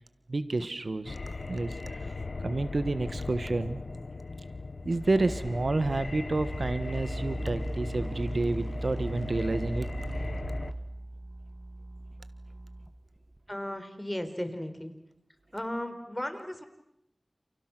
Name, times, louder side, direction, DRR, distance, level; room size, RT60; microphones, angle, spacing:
voice 1, 0.3-1.2 1.5-2.1 2.4-3.8 4.8-9.9, right 2 dB, 75° right, 12 dB, 1.4 m, -29 dB
sound 1, 1.1-10.7, left 3 dB, 90° left, 1.1 m, -38 dB
sound 2, 4.8-13.4, right 1 dB, 30° right, 2.6 m, -38 dB
voice 2, 13.5-15.0 15.5-16.7, left 1 dB, 15° left, 8 dB, 4.1 m, -35 dB
29.5 x 29.5 x 6.2 m, 0.76 s
wide cardioid pair, 45°, 0 cm